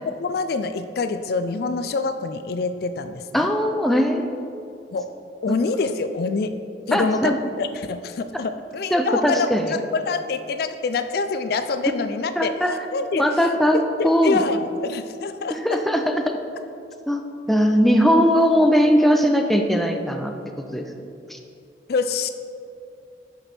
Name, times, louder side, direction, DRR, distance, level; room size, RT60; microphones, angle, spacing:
voice 1, 0.2-3.5 4.9-5.1 5.4-6.6 6.9-12.5 12.9-13.2 13.7-15.6 21.9-22.3, left 4 dB, 60° left, 10 dB, 0.4 m, -26 dB
voice 2, 3.3-4.3 5.5-5.6 6.9-7.4 8.9-9.7 12.4-12.7 13.2-14.4 15.5-16.4 17.1-20.3 20.7-20.9 21.3-21.4, equal, ahead, 4 dB, 0.5 m, -20 dB
10.5 x 5.1 x 4.3 m, 2.5 s
head